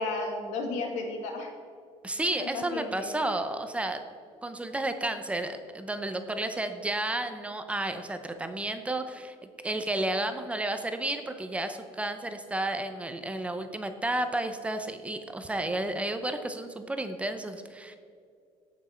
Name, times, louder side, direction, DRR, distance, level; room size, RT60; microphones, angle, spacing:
voice 1, 0.0-1.5 2.4-3.1, left 2 dB, 85° left, 3 dB, 2.1 m, -33 dB
voice 2, 2.0-4.0 4.4-9.4 9.6-18.0, right 1 dB, 10° right, 8 dB, 0.6 m, -32 dB
16.5 x 6.0 x 4.4 m, 2.3 s
cardioid pair, 140°, 12 cm